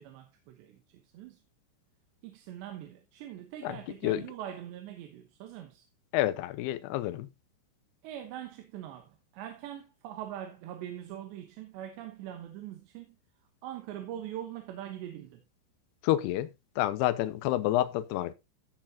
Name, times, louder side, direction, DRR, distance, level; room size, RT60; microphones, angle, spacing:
voice 1, 0.0-1.4 2.2-5.9 8.0-13.2 13.6-15.4, right 11 dB, 75° right, 3.3 m, -42 dB
voice 2, 6.1-7.3 16.0-18.3, left 14 dB, 80° left, 2.5 m, -29 dB
16.5 x 6.4 x 2.8 m
omnidirectional pair, 5.3 m